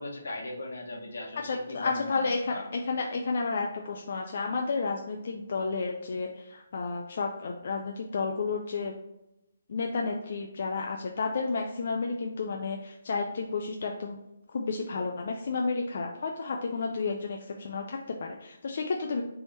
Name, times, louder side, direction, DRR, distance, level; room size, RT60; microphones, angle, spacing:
voice 1, 0.0-2.7, left 2 dB, 80° left, 0 dB, 1.2 m, -38 dB
voice 2, 1.4-8.9 9.7-14.2 14.5-19.2, left 4 dB, 55° left, 2 dB, 0.4 m, -31 dB
3.5 x 3.3 x 4.0 m, 0.93 s
hypercardioid pair, 160°, 0 cm